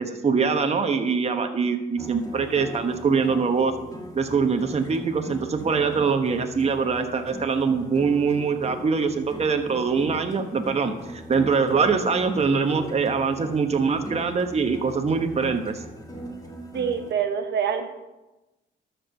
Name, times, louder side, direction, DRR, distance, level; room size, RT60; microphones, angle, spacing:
voice 1, 0.0-3.7 4.1-15.8, right 5 dB, 30° right, 6 dB, 1.0 m, -23 dB
sound 1, 2.0-17.1, equal, 20° left, 1.7 m, -40 dB
voice 2, 16.7-17.9, right 7 dB, 60° right, 7 dB, 1.0 m, -25 dB
12.0 x 4.5 x 6.5 m, 1.0 s
cardioid pair, 90°, 20 cm